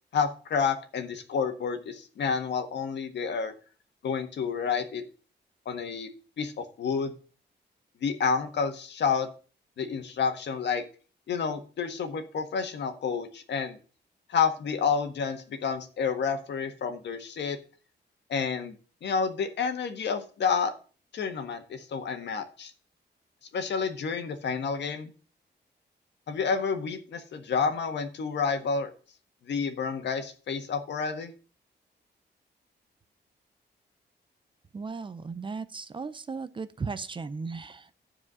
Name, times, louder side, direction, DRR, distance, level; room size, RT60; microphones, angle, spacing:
voice 1, 0.1-3.5 4.0-5.0 5.7-6.1 6.4-7.1 8.0-9.3 9.8-10.8 11.3-13.8 14.3-17.6 18.3-18.8 19.0-20.7 21.1-22.7 23.5-25.1 26.3-28.9 29.5-31.3, left 6 dB, 75° left, 6 dB, 1.6 m, -29 dB
voice 2, 34.7-37.9, right 4 dB, 30° right, 14 dB, 0.5 m, -36 dB
12.0 x 4.8 x 6.3 m, 0.38 s
wide cardioid pair, 155°, 18 cm